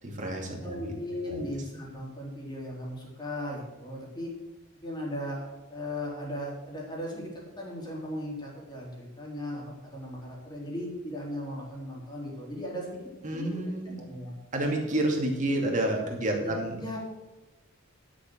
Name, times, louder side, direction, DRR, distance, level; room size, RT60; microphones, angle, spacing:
voice 1, 0.0-0.9 1.3-1.5 13.2-14.0 14.5-16.8, right 1 dB, 40° right, 0 dB, 2.5 m, -29 dB
voice 2, 0.6-4.3 4.8-13.0 13.3-13.6 14.1-14.3 16.4-17.0, left 1 dB, 20° left, -3 dB, 3.6 m, -37 dB
12.0 x 6.7 x 6.2 m, 1.1 s
head